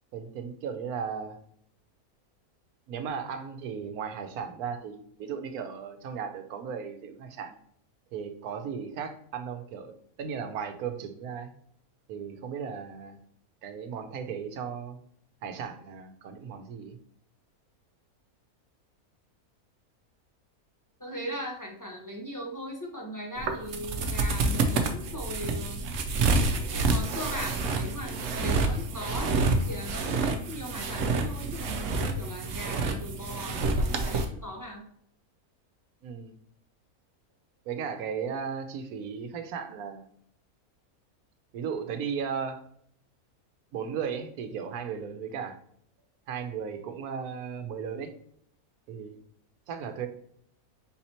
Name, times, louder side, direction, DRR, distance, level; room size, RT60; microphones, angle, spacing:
voice 1, 0.1-1.4 2.9-7.6 8.1-9.9 10.2-11.5 12.1-13.2 13.6-15.0 15.4-17.0 36.0-36.3 37.7-40.1 41.5-42.6 43.7-45.6 46.3-48.1 48.9-49.2 49.7-50.1, right 7 dB, 80° right, 8 dB, 1.1 m, -36 dB
voice 2, 21.0-25.8 26.7-29.3 29.7-34.8, equal, 20° left, -1 dB, 0.5 m, -39 dB
sound 1, 23.4-34.2, right 3 dB, 65° right, 0.9 m, -28 dB
4.0 x 2.9 x 4.2 m, 0.67 s
omnidirectional pair, 1.6 m